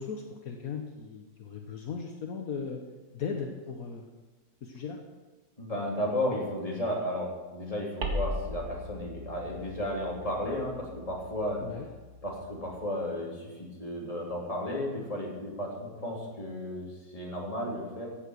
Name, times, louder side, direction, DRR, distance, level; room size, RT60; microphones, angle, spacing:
voice 1, 0.0-2.8 3.1-4.1 4.6-5.0 11.6-11.9, left 5 dB, 70° left, 3 dB, 1.5 m, -37 dB
voice 2, 5.6-11.6 12.2-18.1, left 1 dB, 20° left, -2 dB, 3.0 m, -33 dB
sound 1, 8.0-12.9, left 1 dB, 90° right, 2.2 m, -39 dB
15.5 x 7.9 x 6.3 m, 1.2 s
omnidirectional pair, 1.6 m